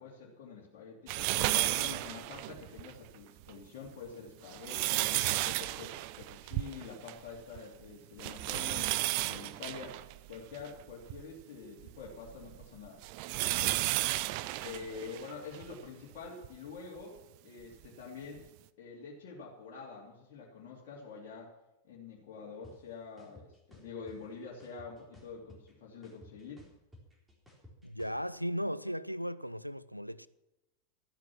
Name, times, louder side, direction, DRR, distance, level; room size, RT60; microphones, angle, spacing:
voice 1, 0.0-5.2 5.4-13.0 13.4-13.8 14.6-17.2 17.4-18.4 18.8-21.5 21.8-26.7, left 5 dB, 45° left, 2.9 m, -46 dB
sound 1, 1.1-2.9 3.4-3.5 4.3-7.3 7.6-7.7 8.2-11.2 11.8-15.7 16.4-16.5 17.8-17.9, right 18 dB, 45° right, 0.6 m, -33 dB
sound 2, 22.6-22.7 23.2-24.2 24.6-25.7 26.0-28.2, left 1 dB, 10° right, 3.8 m, -55 dB
voice 2, 27.8-30.3, equal, 90° left, 0.5 m, -36 dB
13.5 x 10.5 x 6.1 m
figure-of-eight pair, 90°, 0 cm